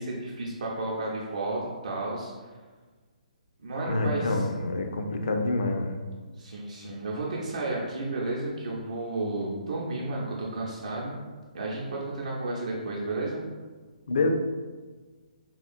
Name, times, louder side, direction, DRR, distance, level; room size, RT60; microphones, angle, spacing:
voice 1, 0.0-2.3 3.6-4.5 6.4-11.2 11.5-13.4, right 2 dB, 65° right, -5 dB, 0.6 m, -32 dB
voice 2, 3.8-6.0 14.1-14.3, left 2 dB, 60° left, 4 dB, 0.4 m, -27 dB
3.5 x 2.3 x 2.5 m, 1.4 s
figure-of-eight pair, 130°, 4 cm